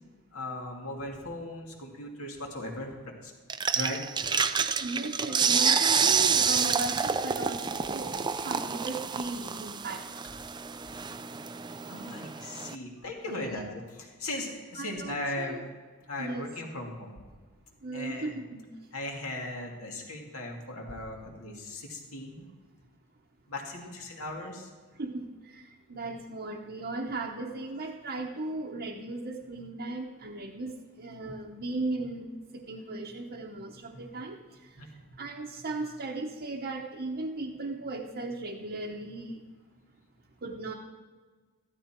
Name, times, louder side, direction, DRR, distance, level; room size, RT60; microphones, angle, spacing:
voice 1, 0.3-3.0 3.2-3.3 3.7-4.0 11.9-13.6 14.0-15.6 16.1-17.3 17.9-18.3 18.9-22.5 23.5-24.7 34.8-35.0, left 1 dB, 70° left, 0 dB, 2.4 m, -38 dB
sound 1, 3.5-12.7, right 6 dB, 20° right, 0.4 m, -28 dB
voice 2, 4.8-8.1 8.4-10.0 13.3-13.7 14.8-15.6 16.2-16.5 17.8-18.6 25.0-25.3 25.5-25.6 25.9-32.2 32.5-34.4 35.2-39.4 40.4-40.7, right 2 dB, 45° right, -2 dB, 1.0 m, -36 dB
14.0 x 12.5 x 4.5 m, 1.5 s
head